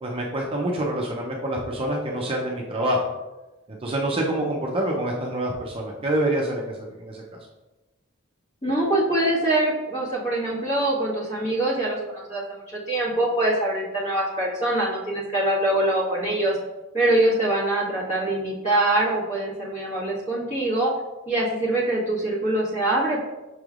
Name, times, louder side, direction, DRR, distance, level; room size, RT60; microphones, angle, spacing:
voice 1, 0.0-3.0 3.7-7.2, right 1 dB, 25° right, -2 dB, 0.5 m, -26 dB
voice 2, 8.6-16.6 16.9-20.9 21.3-23.2, right 1 dB, 35° left, -6 dB, 1.5 m, -24 dB
6.0 x 3.2 x 2.4 m, 1.1 s
head